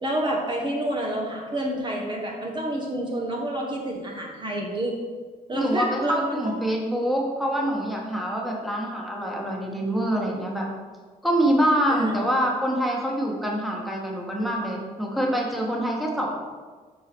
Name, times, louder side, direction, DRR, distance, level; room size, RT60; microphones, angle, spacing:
voice 1, 0.0-5.0 5.5-6.6 11.9-12.2, right 1 dB, 30° right, -1 dB, 1.3 m, -28 dB
voice 2, 5.5-10.7 11.2-16.3, equal, ahead, -2 dB, 1.5 m, -25 dB
7.0 x 4.8 x 4.5 m, 1.5 s
cardioid pair, 85°, 16 cm